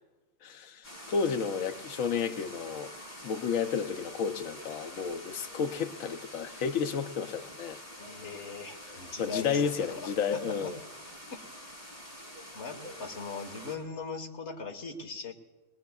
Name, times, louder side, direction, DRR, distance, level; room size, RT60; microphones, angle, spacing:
voice 1, 0.4-2.9 3.2-7.8 9.2-10.8, left 6 dB, 85° left, 1.1 m, -32 dB
sound 1, 0.8-13.8, equal, 10° left, 4.1 m, -46 dB
voice 2, 8.0-10.7 12.5-15.3, left 4 dB, 60° left, 1.7 m, -40 dB
21.5 x 20.0 x 2.3 m
omnidirectional pair, 1.3 m